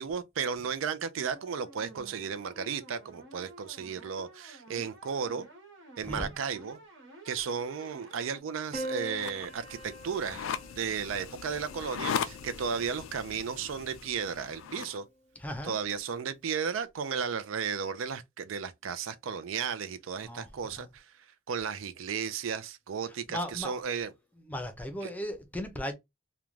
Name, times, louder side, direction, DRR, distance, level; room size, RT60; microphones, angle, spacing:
voice 1, 0.0-5.5 6.0-6.8 7.3-10.5 10.8-15.0 15.6-21.0 21.5-24.1, right 6 dB, 85° right, 0.4 m, -34 dB
sound 1, 1.1-8.4, right 2 dB, 70° right, 1.1 m, -51 dB
voice 2, 6.0-6.3 15.3-15.8 20.2-20.9 23.1-23.8 24.5-25.9, equal, 10° left, 0.5 m, -37 dB
Piano, 8.7-13.2 14.4-15.1, right 1 dB, 35° right, 0.9 m, -43 dB
sound 2, 9.1-15.0, left 7 dB, 80° left, 0.3 m, -38 dB
2.4 x 2.2 x 3.1 m
head